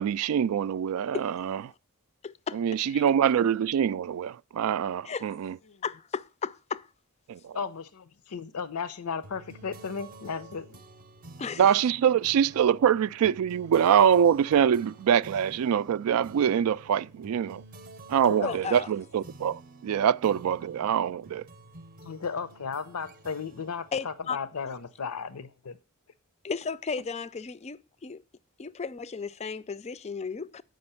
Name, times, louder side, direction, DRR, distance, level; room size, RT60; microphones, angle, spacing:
voice 1, 0.0-1.6 2.5-5.6 7.3-7.6 11.6-17.6 18.1-21.4, right 8 dB, 75° right, 0.3 m, -24 dB
voice 2, 2.2-3.0 5.0-5.3 5.8-6.9 11.4-11.6 18.4-18.9 23.9-24.4 26.4-28.2 28.6-30.6, left 5 dB, 30° left, 0.4 m, -34 dB
voice 3, 7.5-10.8 18.2-18.6 22.0-25.8, left 5 dB, 85° left, 0.6 m, -35 dB
sound 1, 9.2-25.1, right 2 dB, 40° right, 0.6 m, -50 dB
7.8 x 5.2 x 5.6 m
head